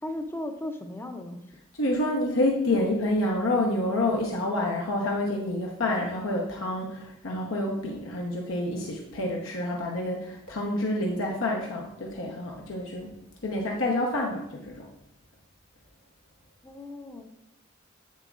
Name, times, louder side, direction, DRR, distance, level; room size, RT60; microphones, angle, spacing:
voice 1, 0.0-1.4 16.6-17.3, left 1 dB, 10° left, 6 dB, 0.5 m, -36 dB
voice 2, 1.8-13.1 13.4-14.9, left 1 dB, 85° left, -1 dB, 0.9 m, -28 dB
8.3 x 7.3 x 2.4 m, 0.83 s
head